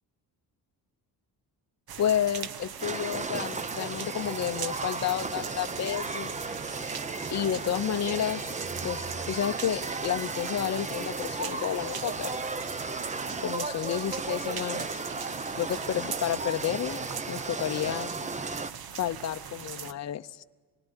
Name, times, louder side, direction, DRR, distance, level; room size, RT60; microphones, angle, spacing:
sound 1, 1.9-19.9, right 8 dB, 60° right, 1.2 m, -40 dB
voice 1, 2.0-6.4 7.3-8.5 8.8-12.4 13.4-15.0 15.6-18.1 19.0-20.4, left 10 dB, 40° left, 8 dB, 0.7 m, -31 dB
sound 2, 2.8-18.7, right 3 dB, 15° right, 0.8 m, -35 dB
25.0 x 20.0 x 9.8 m, 1.4 s
cardioid pair, 100°, 41 cm